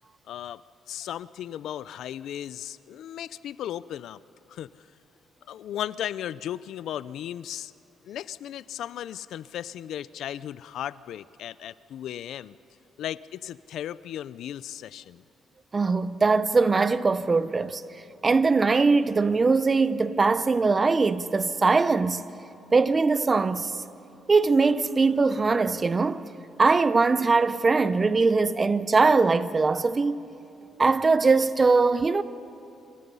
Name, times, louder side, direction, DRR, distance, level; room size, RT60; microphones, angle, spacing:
voice 1, 0.3-0.6 0.9-4.2 4.5-4.7 5.5-7.7 8.1-12.5 13.0-15.2, left 11 dB, 75° left, 0.5 m, -36 dB
voice 2, 15.7-17.8 18.2-22.3 22.7-23.7 24.3-26.2 26.6-30.2 30.8-32.2, right 4 dB, 30° right, 0.8 m, -21 dB
27.0 x 27.0 x 5.6 m
cardioid pair, 90°, 0 cm